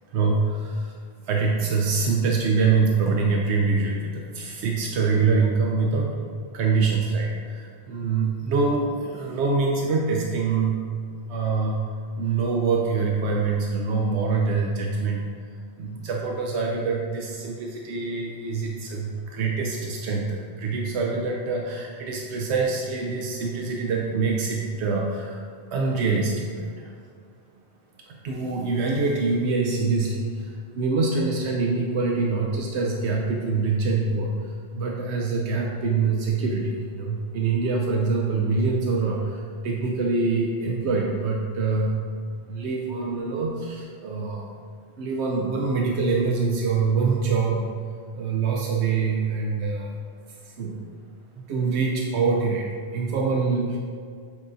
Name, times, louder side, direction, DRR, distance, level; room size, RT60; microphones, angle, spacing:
voice 1, 0.1-0.9 1.3-6.1 6.5-10.9 11.3-11.8 12.2-15.2 15.8-25.4 25.7-26.9 28.1-34.3 34.7-42.0 42.4-44.5 45.0-47.7 48.1-50.0 50.4-50.8 51.5-53.8, right 4 dB, 90° right, -1 dB, 0.9 m, -25 dB
7.7 x 4.8 x 2.6 m, 2.1 s
omnidirectional pair, 1.1 m